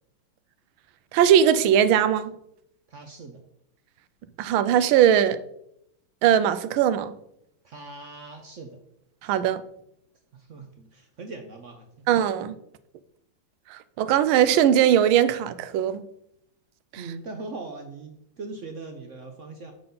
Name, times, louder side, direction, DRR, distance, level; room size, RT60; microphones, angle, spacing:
voice 1, 1.1-2.3 4.4-5.4 6.2-7.1 9.2-9.6 12.1-12.6 13.7-16.0, right 9 dB, 90° right, 1.4 m, -20 dB
voice 2, 2.9-3.4 7.6-8.8 10.3-12.1 17.0-19.7, right 3 dB, 60° right, 0.8 m, -40 dB
6.9 x 6.7 x 3.8 m
omnidirectional pair, 2.2 m